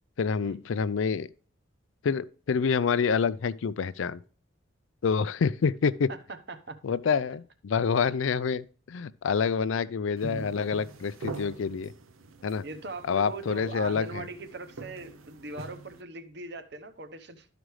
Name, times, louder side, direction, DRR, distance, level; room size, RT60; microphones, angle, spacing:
voice 1, 0.2-1.3 2.0-4.2 5.0-6.1 6.8-11.9 12.4-12.6 13.1-14.3, left 6 dB, 70° left, 0.4 m, -27 dB
voice 2, 6.1-6.8 12.6-17.5, right 3 dB, 55° right, 0.9 m, -41 dB
sound 1, 10.2-16.0, right 3 dB, 90° right, 0.7 m, -43 dB
12.5 x 5.0 x 3.2 m
head